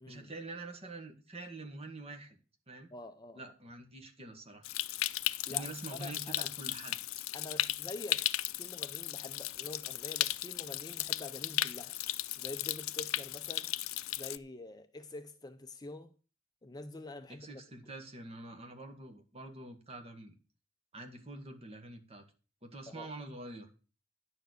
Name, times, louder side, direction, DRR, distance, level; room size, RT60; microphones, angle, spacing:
voice 1, 0.1-2.4 2.7-2.9 3.4-4.7 5.4-7.0 17.3-20.4 20.9-22.2 22.6-23.7, right 2 dB, 30° right, 1.8 m, -46 dB
voice 2, 2.9-3.5 5.5-6.5 7.3-8.3 8.6-12.0 12.4-13.7 14.1-16.1 16.6-17.6 22.9-23.1, left 2 dB, 20° left, 0.5 m, -46 dB
Stream, 4.6-14.4, left 15 dB, 75° left, 0.5 m, -36 dB
10.5 x 7.0 x 6.7 m
head